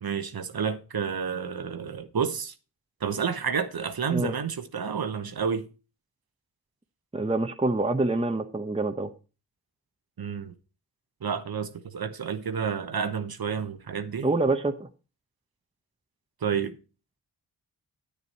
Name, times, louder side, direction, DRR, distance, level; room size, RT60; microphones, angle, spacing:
voice 1, 0.0-2.5 3.0-5.7 10.2-10.5 11.2-14.3 16.4-16.8, right 6 dB, 55° right, 1.1 m, -30 dB
voice 2, 7.1-9.1 14.2-14.9, right 2 dB, 15° right, 0.9 m, -26 dB
9.2 x 8.4 x 4.2 m
cardioid pair, 45°, 44 cm